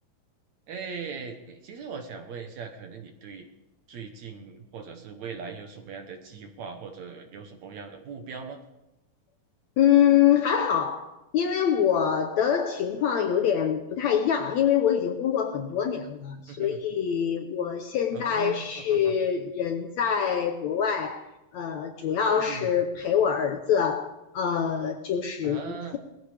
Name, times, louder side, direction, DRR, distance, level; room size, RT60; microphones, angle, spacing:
voice 1, 0.7-3.5 3.9-8.6 16.5-16.8 18.1-19.1 22.4-22.8 25.4-26.0, right 5 dB, 65° right, 5 dB, 2.1 m, -40 dB
voice 2, 9.8-21.3 21.5-26.0, left 8 dB, 70° left, 5 dB, 1.8 m, -25 dB
20.5 x 15.0 x 3.4 m, 0.95 s
omnidirectional pair, 4.1 m